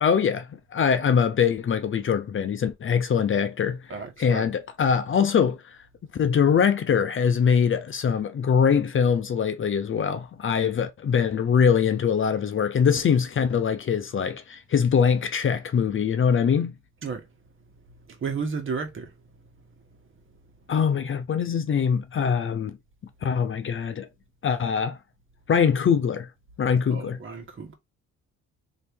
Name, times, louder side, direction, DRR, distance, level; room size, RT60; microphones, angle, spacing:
voice 1, 0.0-0.5 0.7-3.8 4.2-5.8 6.2-16.7 20.7-22.7 23.2-24.1 24.4-25.0 25.5-26.3 26.6-27.2, left 7 dB, 40° left, 0.7 m, -23 dB
voice 2, 3.9-4.5 17.0-17.2 18.1-19.1 26.9-27.7, right 5 dB, 40° right, 1.4 m, -33 dB
3.2 x 2.8 x 4.5 m
cardioid pair, 90°, 30 cm